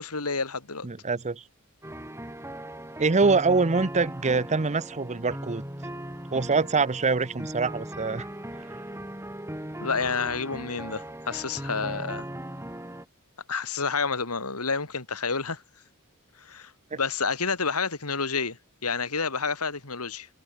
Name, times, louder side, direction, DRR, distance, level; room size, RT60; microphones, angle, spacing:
voice 1, 0.0-0.9 9.8-12.2 13.5-15.6 16.4-20.3, left 4 dB, 80° left, 3.0 m, -29 dB
voice 2, 0.8-1.4 3.0-5.6 6.3-8.3 16.9-17.0, right 4 dB, 30° right, 0.8 m, -24 dB
sound 1, 1.8-13.0, right 1 dB, 10° right, 6.2 m, -38 dB
head